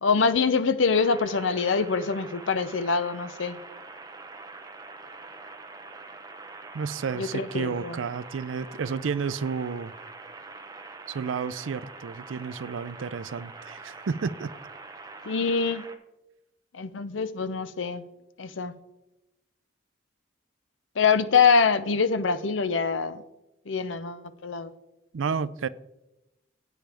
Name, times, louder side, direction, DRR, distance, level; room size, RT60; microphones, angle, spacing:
voice 1, 0.0-3.6 7.2-8.0 15.3-15.8 16.7-18.1 18.4-18.8 21.0-23.2 23.7-24.7, left 5 dB, 80° left, 0.7 m, -24 dB
sound 1, 0.9-15.9, right 3 dB, 20° right, 0.8 m, -44 dB
voice 2, 6.7-9.9 11.1-14.5 25.1-25.7, right 5 dB, 85° right, 0.4 m, -31 dB
15.5 x 8.9 x 3.5 m
head